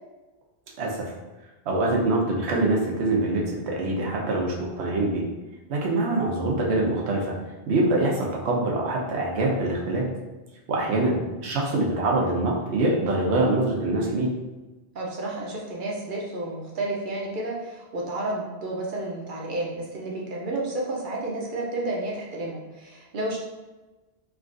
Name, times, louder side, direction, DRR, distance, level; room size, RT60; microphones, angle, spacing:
voice 1, 0.8-1.1 1.7-5.2 5.7-7.3 7.7-10.1 10.7-14.3, right 2 dB, 85° right, -1 dB, 1.0 m, -24 dB
voice 2, 10.7-11.2 14.9-23.4, right 2 dB, 55° right, -2 dB, 0.7 m, -31 dB
3.5 x 2.3 x 2.4 m, 1.2 s
omnidirectional pair, 1.1 m